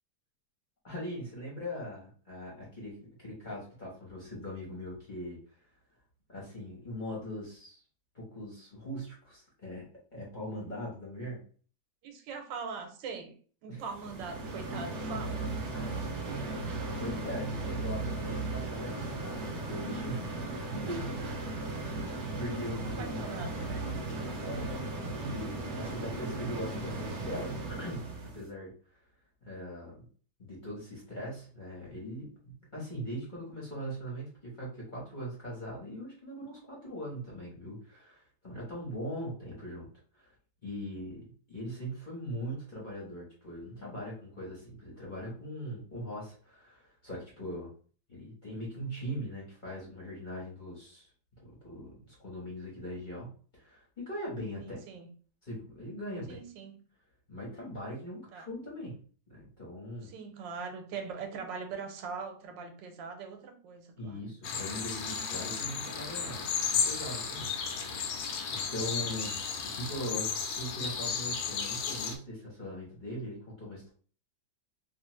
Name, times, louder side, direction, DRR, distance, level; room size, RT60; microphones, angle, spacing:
voice 1, 0.8-5.4 6.3-7.8 8.1-9.9 10.1-11.4 13.7-13.8 15.7-15.8 17.0-20.4 20.7-21.3 22.2-23.2 24.0-28.7 29.4-30.1 30.4-39.9 40.1-40.3 40.6-47.7 48.1-51.1 51.4-54.8 55.4-56.4 57.3-59.0 59.3-60.1 64.0-68.1 68.5-69.4 69.6-73.9, equal, 30° left, 1.0 m, -41 dB
voice 2, 12.0-13.4 13.6-15.5 16.3-16.7 22.8-23.9 54.6-55.1 56.3-56.8 58.3-58.5 60.0-64.3, right 5 dB, 90° right, 1.3 m, -42 dB
sound 1, 13.9-28.4, right 2 dB, 65° right, 1.0 m, -36 dB
sound 2, 64.4-72.2, left 6 dB, 85° left, 1.3 m, -34 dB
3.0 x 2.4 x 3.0 m
omnidirectional pair, 1.9 m